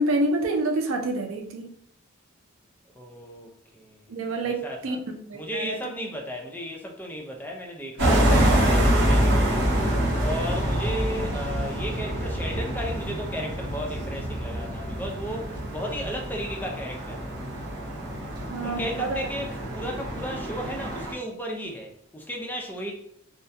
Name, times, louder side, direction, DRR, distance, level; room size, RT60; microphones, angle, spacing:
voice 1, 0.0-1.7 4.1-5.8 18.5-19.3, right 2 dB, 85° right, 4 dB, 0.4 m, -27 dB
voice 2, 3.0-4.1 4.4-5.0 5.3-9.7 10.2-17.4 18.6-22.9, equal, 10° left, 0 dB, 0.4 m, -35 dB
sound 1, 8.0-21.1, equal, 60° right, 0.8 m, -26 dB
2.3 x 2.1 x 2.6 m, 0.71 s
head